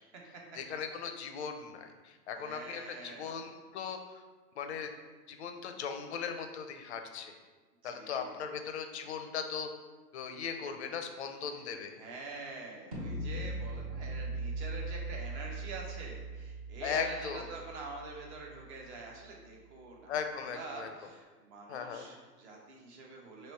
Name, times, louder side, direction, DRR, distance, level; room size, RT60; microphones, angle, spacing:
voice 1, 0.6-4.2 4.6-4.9 5.3-7.4 7.8-9.7 10.1-12.0 16.8-17.5 20.1-20.9 21.7-22.1, left 6 dB, 45° left, 6 dB, 0.4 m, -38 dB
voice 2, 2.3-3.3 7.8-8.3 12.0-20.2 20.5-23.5, right 3 dB, 40° right, -1 dB, 1.0 m, -46 dB
sound 1, 12.9-18.9, right 2 dB, 25° right, 0.4 m, -40 dB
3.1 x 3.0 x 4.3 m, 1.3 s
hypercardioid pair, 130°, 49 cm